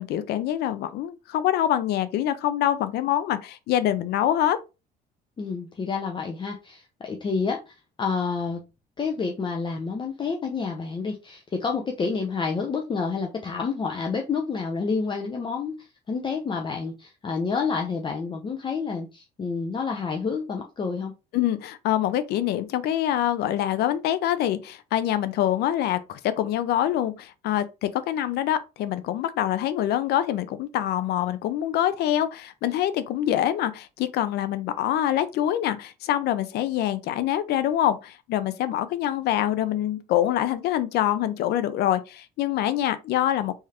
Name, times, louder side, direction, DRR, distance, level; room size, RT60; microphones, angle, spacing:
voice 1, 0.0-4.6 21.3-43.6, left 11 dB, 75° left, 0.5 m, -25 dB
voice 2, 5.4-8.6 9.0-21.1, left 5 dB, 30° left, 0.6 m, -29 dB
3.5 x 3.2 x 2.8 m
cardioid pair, 110°, 17 cm